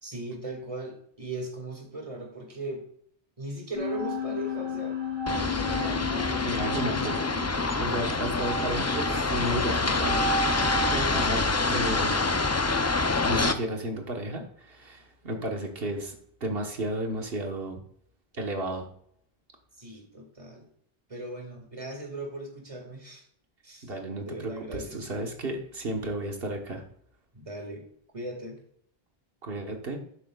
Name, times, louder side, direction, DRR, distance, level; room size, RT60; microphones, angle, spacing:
voice 1, 0.0-2.8 3.4-5.0 5.7-6.4 19.8-20.7 21.1-23.2 23.6-23.9 24.2-25.0 27.3-27.8 28.1-28.6, right 1 dB, 35° right, 2 dB, 2.1 m, -38 dB
sound 1, 3.7-11.2, left 2 dB, 60° left, 3.3 m, -34 dB
sound 2, 5.3-13.5, left 3 dB, 30° left, 0.3 m, -26 dB
voice 2, 6.4-7.2 7.8-12.3 13.2-16.1 16.4-17.8 18.3-18.8 23.8-26.8 29.4-30.0, right 1 dB, 70° right, 2 dB, 1.5 m, -33 dB
12.0 x 8.2 x 2.4 m, 0.66 s
omnidirectional pair, 1.0 m